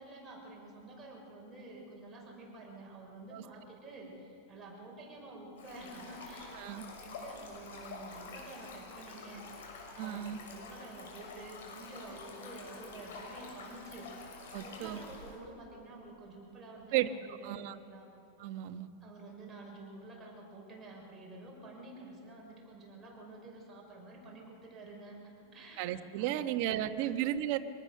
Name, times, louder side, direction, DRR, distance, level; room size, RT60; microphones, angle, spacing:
voice 1, 0.0-9.7 9.9-14.3 14.6-18.1 19.0-27.1, right 2 dB, 15° right, -2 dB, 5.7 m, -50 dB
Stream, 5.6-15.4, left 3 dB, 85° left, 6.5 m, -48 dB
voice 2, 6.5-6.9 10.0-10.4 14.5-15.0 16.9-17.1 17.4-17.7 18.4-18.9 25.8-27.6, right 13 dB, 50° right, 8 dB, 1.2 m, -34 dB
25.5 x 19.0 x 6.8 m, 2.7 s
supercardioid pair, 155°, 0 cm